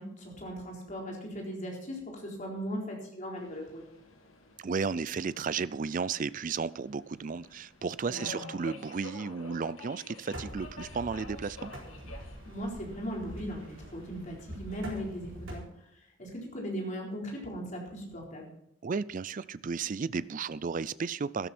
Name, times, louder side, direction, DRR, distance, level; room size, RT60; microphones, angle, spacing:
voice 1, 0.0-3.8 8.1-8.4 12.5-18.5, equal, 35° left, -1 dB, 4.1 m, -38 dB
Subway metro underground, 3.4-15.4, left 3 dB, 85° left, 2.6 m, -50 dB
voice 2, 4.6-11.7 18.8-21.5, right 5 dB, 40° right, 17 dB, 0.4 m, -33 dB
sound 1, 10.3-15.6, equal, 65° right, 4.1 m, -45 dB
13.0 x 12.5 x 4.3 m, 0.77 s
head